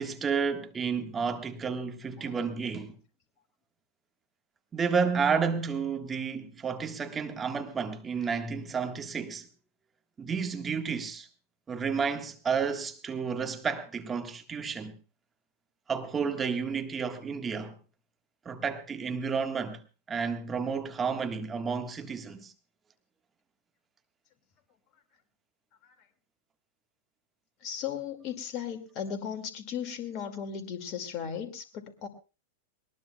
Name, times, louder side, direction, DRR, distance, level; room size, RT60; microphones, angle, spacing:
voice 1, 0.0-3.0 4.7-9.5 10.2-11.3 11.7-14.9 15.9-17.7 18.4-19.8 20.1-22.5, right 6 dB, 20° right, 1.5 m, -31 dB
voice 2, 27.6-32.1, left 8 dB, 45° left, 2.2 m, -36 dB
21.0 x 19.5 x 2.3 m
hypercardioid pair, 100°, 0 cm